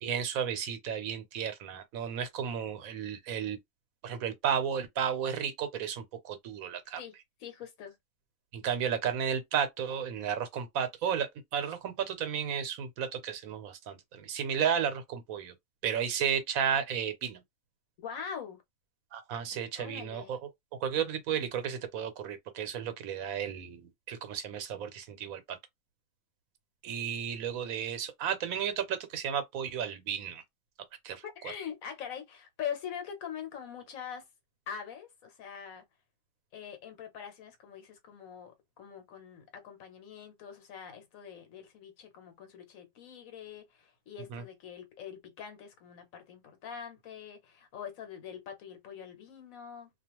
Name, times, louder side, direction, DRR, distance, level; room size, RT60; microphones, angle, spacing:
voice 1, 0.0-3.6 4.0-7.0 8.5-15.5 15.8-17.4 19.1-20.4 20.8-25.6 26.8-30.4 31.0-31.2 44.3-44.4, right 8 dB, 80° right, 1.1 m, -33 dB
voice 2, 7.4-8.0 18.0-18.6 19.5-20.3 31.2-34.2 34.7-35.8 36.5-49.9, left 8 dB, 75° left, 1.2 m, -43 dB
2.4 x 2.3 x 2.9 m
omnidirectional pair, 1.5 m